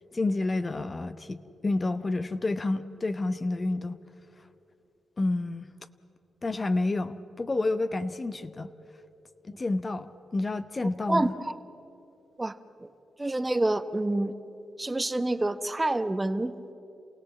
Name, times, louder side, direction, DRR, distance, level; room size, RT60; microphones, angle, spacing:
voice 1, 0.1-4.0 5.2-5.7 6.4-8.7 9.4-11.3, left 2 dB, 35° left, 11 dB, 0.9 m, -29 dB
voice 2, 11.1-11.5 12.4-12.5 13.2-14.3 14.8-16.7, right 2 dB, 25° right, 11 dB, 1.0 m, -27 dB
27.5 x 17.0 x 7.4 m, 2.8 s
supercardioid pair, 50°, 0 cm